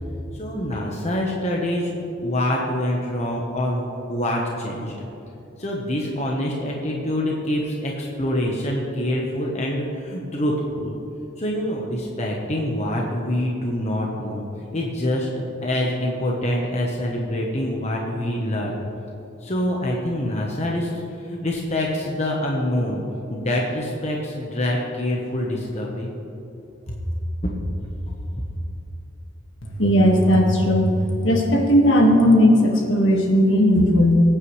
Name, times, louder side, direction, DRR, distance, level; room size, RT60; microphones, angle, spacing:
voice 1, 0.3-5.1 5.6-11.0 11.4-14.4 14.7-15.3 15.6-18.9 19.4-23.0 23.3-26.1 26.9-27.0, left 1 dB, 35° left, -1 dB, 1.1 m, -25 dB
voice 2, 29.8-30.9 31.2-34.2, equal, 65° left, 0 dB, 1.8 m, -16 dB
20.5 x 9.1 x 3.3 m, 2.8 s
head